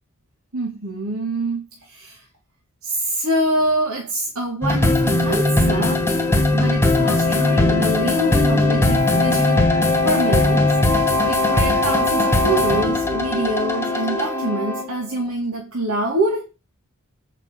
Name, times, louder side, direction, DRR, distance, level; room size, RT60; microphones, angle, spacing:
voice 1, 0.5-2.2 2.8-6.3 6.5-9.7 10.0-16.5, right 1 dB, 90° right, 2.6 m, -25 dB
sound 1, 4.6-15.0, left 2 dB, 10° left, 1.3 m, -19 dB
8.4 x 5.9 x 5.5 m
head